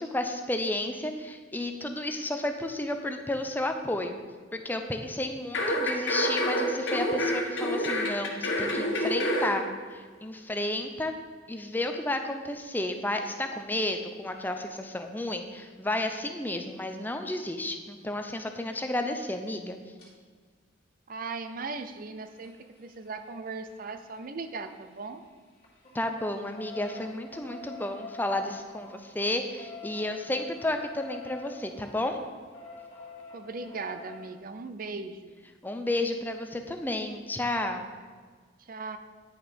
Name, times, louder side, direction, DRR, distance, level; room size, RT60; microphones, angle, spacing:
voice 1, 0.0-4.2 4.5-9.6 9.9-11.1 11.5-19.8 25.9-32.2 35.6-37.9, left 1 dB, 10° left, 6 dB, 0.5 m, -32 dB
sound 1, 5.5-9.6 9.9-10.0, equal, 65° left, 1.5 m, -28 dB
sound 2, 20.0-20.1 21.7-25.3 25.6-34.3 36.0-36.1 36.3-36.4 36.7-36.8, left 3 dB, 30° left, 2.6 m, -47 dB
voice 2, 21.1-25.2 33.3-35.3 38.6-39.0, right 4 dB, 45° right, 9 dB, 0.5 m, -38 dB
9.8 x 6.2 x 5.2 m, 1.5 s
head